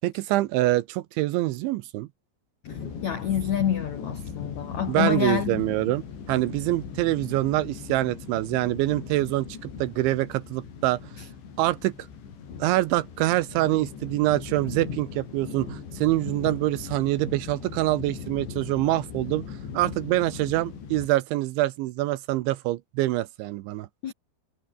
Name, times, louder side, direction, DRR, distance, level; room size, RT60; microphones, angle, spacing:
voice 1, 0.0-2.1 4.9-11.1 11.6-11.9 12.6-19.5 19.7-23.9, right 17 dB, 80° right, 3.0 m, -25 dB
sound 1, 2.6-21.1, left 6 dB, 60° left, 7.1 m, -39 dB
voice 2, 2.7-5.6 11.2-11.3 24.0-24.1, left 9 dB, 75° left, 1.6 m, -28 dB
omnidirectional pair, 5.8 m